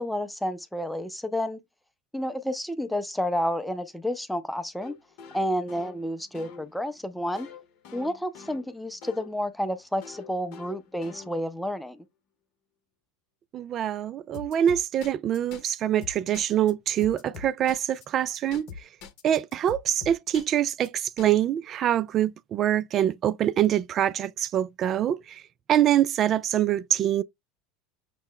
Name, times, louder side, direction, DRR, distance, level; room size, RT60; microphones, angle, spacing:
voice 1, 0.0-1.6 2.1-4.9 5.3-7.5 7.9-12.0, equal, 5° left, 0.7 m, -30 dB
sound 1, 4.8-9.4 10.0-11.7 14.3-15.7 16.0-16.7 17.0-18.0 18.3-21.3, left 6 dB, 55° left, 0.8 m, -44 dB
voice 2, 13.5-18.7 19.2-25.4 25.7-27.2, right 11 dB, 40° right, 0.4 m, -25 dB
6.0 x 2.0 x 3.7 m
hypercardioid pair, 85°, 0 cm